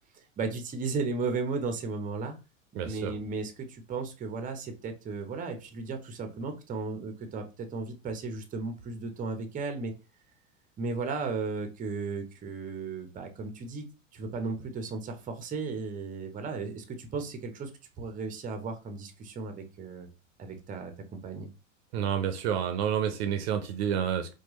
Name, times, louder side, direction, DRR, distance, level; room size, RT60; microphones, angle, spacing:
voice 1, 0.4-2.4 2.8-9.9 10.8-13.8 14.1-17.7 18.0-20.1 20.4-21.5, right 4 dB, 20° right, 0.7 m, -35 dB
voice 2, 2.8-3.2 21.9-24.3, right 8 dB, 55° right, 0.7 m, -29 dB
4.4 x 2.3 x 3.0 m
hypercardioid pair, 90°, 39 cm